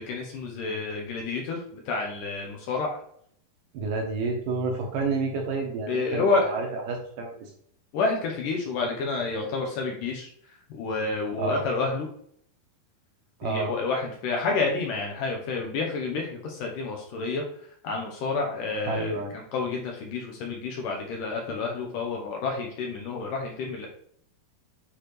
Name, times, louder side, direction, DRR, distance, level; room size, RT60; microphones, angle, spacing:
voice 1, 0.0-2.9 5.9-6.7 7.9-10.3 10.8-12.1 13.4-17.4 17.8-23.9, left 4 dB, 70° left, 0 dB, 2.2 m, -29 dB
voice 2, 3.7-7.5 11.4-11.6 13.4-13.7 18.9-19.3, right 3 dB, 70° right, 1 dB, 2.3 m, -29 dB
9.1 x 4.1 x 3.2 m, 0.65 s
omnidirectional pair, 4.6 m